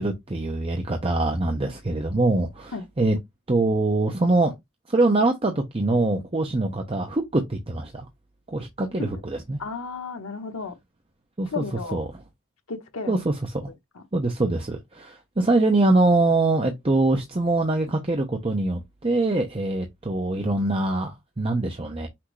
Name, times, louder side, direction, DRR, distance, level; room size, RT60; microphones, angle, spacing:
voice 1, 0.0-3.2 3.5-4.5 4.9-8.1 8.5-9.6 11.4-11.6 11.9-12.1 13.1-13.7 14.1-22.1, right 2 dB, 25° right, 0.6 m, -23 dB
voice 2, 9.6-10.8 11.5-12.0 12.7-13.2 13.9-14.0, left 4 dB, 80° left, 1.0 m, -33 dB
5.9 x 2.6 x 3.1 m
head